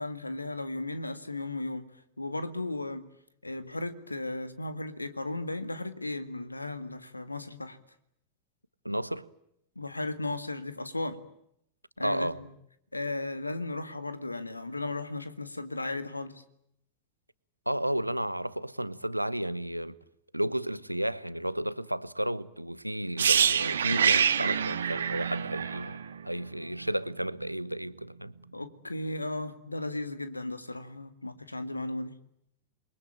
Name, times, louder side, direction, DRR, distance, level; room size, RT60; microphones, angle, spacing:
voice 1, 0.0-1.9 2.2-3.1 3.4-7.8 9.8-11.2 12.0-12.5 12.9-16.4 28.5-32.1, left 2 dB, 85° left, 2.0 m, -35 dB
voice 2, 8.8-9.3 12.0-12.4 17.7-20.0 20.3-26.0 26.2-28.3, right 1 dB, 90° right, 1.0 m, -32 dB
sound 1, 23.2-27.0 27.3-27.5, right 7 dB, 65° right, 1.7 m, -26 dB
28.5 x 22.5 x 8.9 m
figure-of-eight pair, 90°, 0 cm